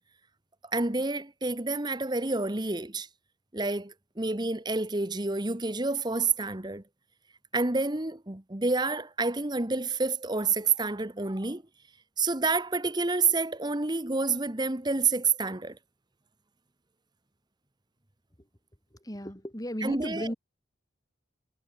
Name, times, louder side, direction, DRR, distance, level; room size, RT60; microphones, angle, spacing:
voice 1, 0.7-3.1 3.5-6.8 7.5-11.6 12.2-15.8 19.8-20.3, right 3 dB, 20° right, 1.2 m, -28 dB
voice 2, 19.0-20.3, equal, 20° left, 4.0 m, -34 dB
head